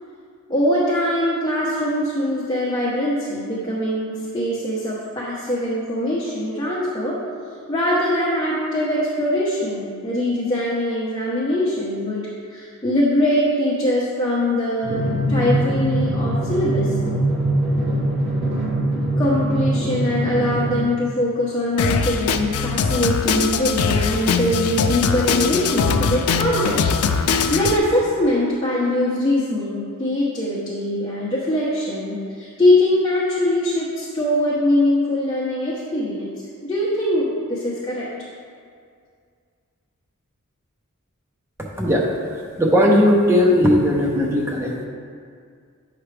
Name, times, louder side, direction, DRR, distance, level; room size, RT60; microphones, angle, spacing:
voice 1, 0.5-7.2 7.7-16.9 19.2-26.8 27.2-36.3 36.6-38.1, left 1 dB, 20° left, -8 dB, 1.0 m, -22 dB
Drum, 14.8-20.8, right 1 dB, 30° right, 1.2 m, -22 dB
Drum kit, 21.8-27.8, left 5 dB, 85° left, 0.4 m, -21 dB
voice 2, 42.6-44.9, equal, 10° right, -2 dB, 0.8 m, -17 dB
8.6 x 5.9 x 3.3 m, 2.2 s
head